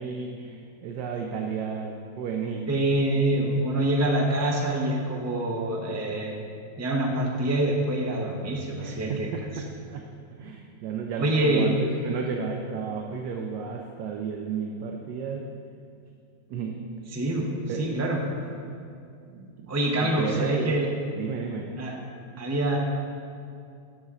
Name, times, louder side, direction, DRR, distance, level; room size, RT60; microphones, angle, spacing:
voice 1, 0.0-2.6 8.8-10.0 10.4-15.4 16.5-16.8 17.7-18.0 18.5-18.8 19.3-19.7 20.0-20.8 21.1-21.7, right 6 dB, 70° right, 2 dB, 1.1 m, -33 dB
voice 2, 2.7-6.4 6.8-9.3 11.2-11.7 17.1-17.5 17.8-18.2 19.7-20.9 21.8-22.0 22.4-22.8, right 1 dB, 20° right, -1 dB, 0.4 m, -25 dB
10.5 x 6.9 x 3.7 m, 2.4 s
omnidirectional pair, 2.1 m